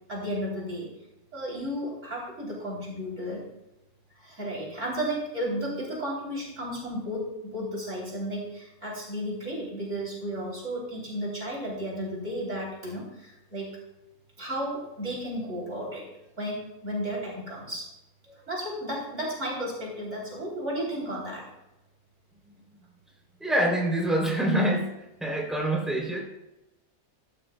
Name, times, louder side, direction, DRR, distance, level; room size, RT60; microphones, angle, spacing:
voice 1, 0.1-0.9 1.3-3.4 4.2-13.7 14.4-16.1 16.4-17.9 18.5-21.5, equal, 55° right, -4 dB, 3.7 m, -33 dB
voice 2, 23.4-24.9 25.2-26.2, right 1 dB, ahead, -2 dB, 3.1 m, -25 dB
14.0 x 11.5 x 2.3 m, 0.91 s
omnidirectional pair, 1.5 m